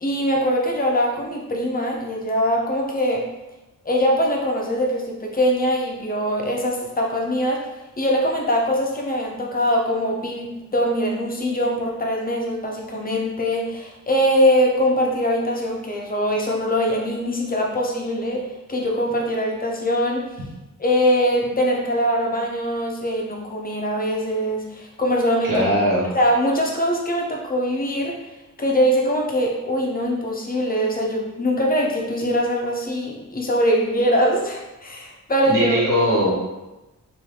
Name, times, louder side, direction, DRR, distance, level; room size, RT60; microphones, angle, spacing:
voice 1, 0.0-3.2 3.8-20.2 20.8-25.5 26.1-35.8, equal, 25° left, -1 dB, 0.6 m, -22 dB
voice 2, 25.4-26.0 35.5-36.3, equal, 75° right, -6 dB, 1.2 m, -20 dB
2.7 x 2.7 x 3.2 m, 1.0 s
wide cardioid pair, 115°, 33 cm